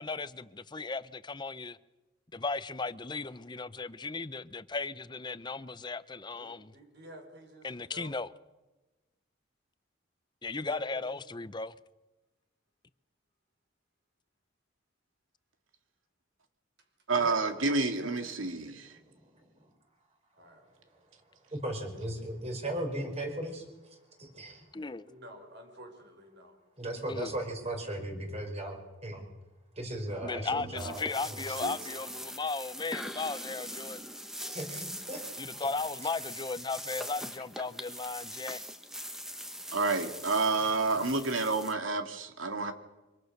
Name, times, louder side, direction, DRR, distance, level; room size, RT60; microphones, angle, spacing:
voice 1, 0.0-1.8 2.3-6.7 7.6-8.3 10.4-11.8 24.7-25.1 27.1-27.3 30.2-34.1 35.4-38.6, left 3 dB, 25° left, 0.7 m, -36 dB
voice 2, 6.3-8.1 10.6-11.2 17.2-18.6 20.3-20.6 25.1-26.6, right 1 dB, 60° right, 5.3 m, -50 dB
voice 3, 17.1-18.9 30.5-30.9 31.6-31.8 39.7-42.7, right 3 dB, 85° right, 2.5 m, -29 dB
voice 4, 19.1-19.7 21.5-24.7 26.8-29.2 29.8-31.4 34.5-35.3, right 1 dB, 35° right, 5.2 m, -37 dB
sound 1, 30.8-41.7, equal, ahead, 1.3 m, -42 dB
25.5 x 25.0 x 6.6 m
head